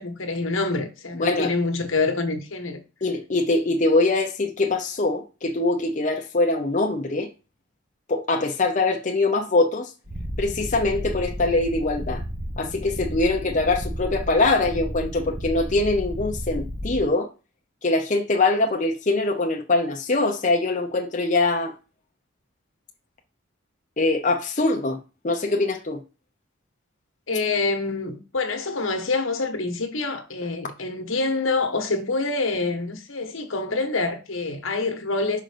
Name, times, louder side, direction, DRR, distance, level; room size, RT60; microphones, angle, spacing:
voice 1, 0.0-2.8 27.3-35.4, left 3 dB, 85° left, 1.2 m, -26 dB
voice 2, 1.2-1.5 3.0-7.3 8.1-9.9 10.4-12.2 12.6-17.3 17.8-21.7 24.0-25.0 25.2-26.0, left 2 dB, 35° left, 0.7 m, -23 dB
Purr, 10.0-17.0, equal, 35° right, 1.1 m, -32 dB
5.6 x 3.8 x 5.0 m
head